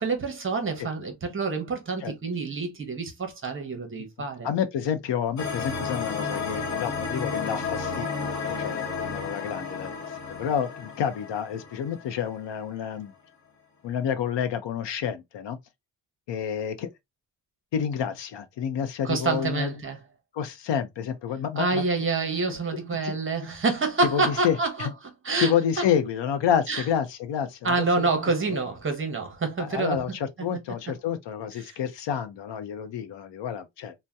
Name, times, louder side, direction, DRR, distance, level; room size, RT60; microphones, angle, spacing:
voice 1, 0.0-4.5 19.0-20.0 21.6-24.9 25.2-25.5 25.8-25.9 26.7-26.8 27.6-30.0 30.4-30.5 31.6-31.7, right 3 dB, 30° right, 0.8 m, -27 dB
voice 2, 4.4-9.9 10.3-13.1 13.8-15.6 16.3-16.9 17.7-19.7 20.3-21.8 23.0-23.2 24.1-24.9 25.4-28.1 28.5-28.6 29.6-33.9, left 8 dB, 75° left, 0.6 m, -29 dB
sound 1, 5.4-12.4, left 5 dB, 40° left, 1.0 m, -32 dB
2.7 x 2.1 x 3.3 m
wide cardioid pair, 155°, 43 cm